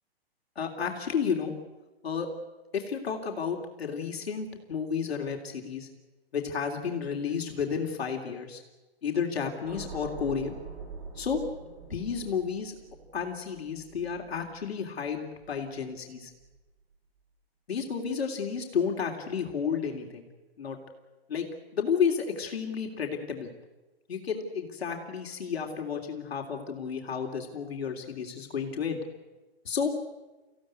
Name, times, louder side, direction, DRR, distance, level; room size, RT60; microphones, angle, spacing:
voice 1, 0.5-1.5 2.0-2.3 2.7-5.9 6.3-8.6 9.0-10.5 11.1-11.4 11.8-12.7 13.1-16.3 17.7-20.3 20.6-20.8 21.3-21.5 21.7-23.5 24.1-29.0 29.6-29.9, left 6 dB, 75° left, 3 dB, 3.3 m, -31 dB
sound 1, 9.6-15.9 16.3-16.6, right 4 dB, 60° right, 7.6 m, -45 dB
25.0 x 16.0 x 9.6 m, 1.2 s
hypercardioid pair, 125°, 31 cm